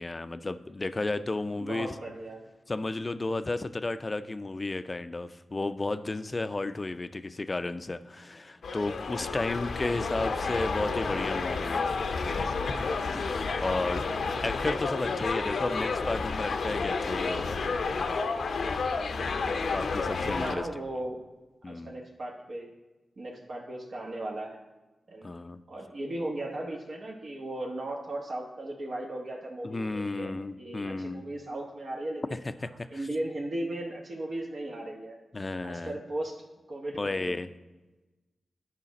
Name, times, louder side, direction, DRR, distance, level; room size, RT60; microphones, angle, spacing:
voice 1, 0.0-1.9 2.7-12.0 13.1-14.1 14.4-17.6 19.7-20.7 21.6-22.0 25.2-25.6 29.6-31.2 32.3-33.0 35.3-36.0 37.0-37.5, left 2 dB, 35° left, 12 dB, 0.4 m, -33 dB
voice 2, 1.6-2.5 10.4-10.6 20.4-21.2 21.7-22.7 23.2-24.6 25.1-25.3 25.7-32.2 32.9-35.2 35.6-36.4 36.7-37.4, right 1 dB, 65° right, -1 dB, 1.1 m, -36 dB
sound 1, 8.6-20.5, left 4 dB, 80° left, 0.6 m, -30 dB
11.0 x 5.0 x 4.1 m, 1.1 s
cardioid pair, 75°, 0 cm